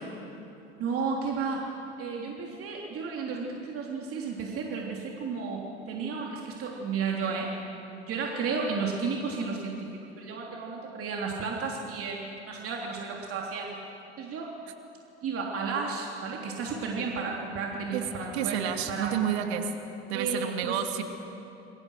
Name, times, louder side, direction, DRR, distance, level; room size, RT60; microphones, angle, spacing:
voice 1, 0.7-1.7 2.0-7.5 8.1-9.9 10.2-13.8 14.2-14.5 15.2-19.1 20.1-20.8, right 4 dB, 40° right, -1 dB, 3.5 m, -33 dB
voice 2, 18.3-19.7 20.1-21.0, right 9 dB, 65° right, 5 dB, 2.7 m, -29 dB
29.0 x 22.5 x 6.5 m, 2.9 s
hypercardioid pair, 80°, 35 cm